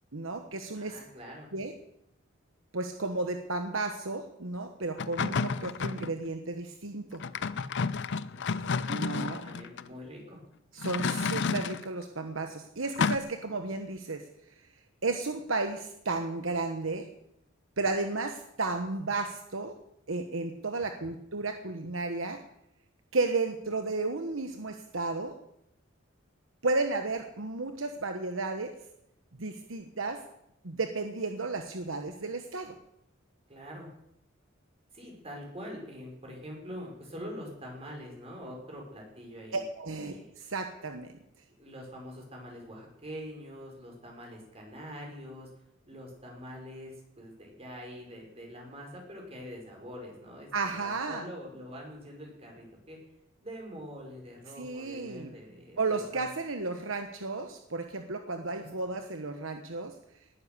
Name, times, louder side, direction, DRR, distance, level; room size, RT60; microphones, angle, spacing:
voice 1, 0.1-1.0 1.5-1.7 2.7-7.2 8.9-9.4 10.7-14.2 15.0-17.1 17.8-19.7 20.1-22.4 23.1-25.3 26.6-28.7 29.4-30.2 30.6-32.7 39.5-41.1 50.5-51.2 54.6-55.3 55.8-59.9, right 3 dB, 75° right, 6 dB, 1.2 m, -33 dB
voice 2, 0.7-1.5 8.3-8.5 8.7-8.9 9.4-10.4 33.5-33.9 34.9-39.6 40.1-40.3 41.6-45.5 45.9-53.0 53.4-56.3 58.6-58.9, equal, 30° right, 0 dB, 5.3 m, -44 dB
sound 1, 5.0-6.1 7.1-9.8 10.8-11.9 13.0-13.2, left 5 dB, 60° left, 0.6 m, -31 dB
19.0 x 9.9 x 6.8 m, 0.79 s
head